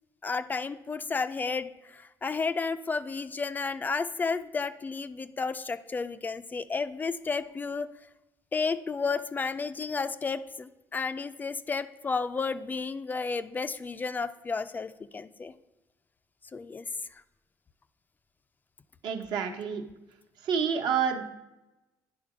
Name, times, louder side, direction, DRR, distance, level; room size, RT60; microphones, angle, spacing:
voice 1, 0.2-7.9 8.5-15.5 16.5-17.2, left 4 dB, 25° left, 12 dB, 0.3 m, -32 dB
voice 2, 19.0-19.8 20.4-21.3, right 7 dB, 70° right, 4 dB, 1.0 m, -28 dB
9.6 x 3.8 x 6.1 m, 0.99 s
cardioid pair, 120°, 8 cm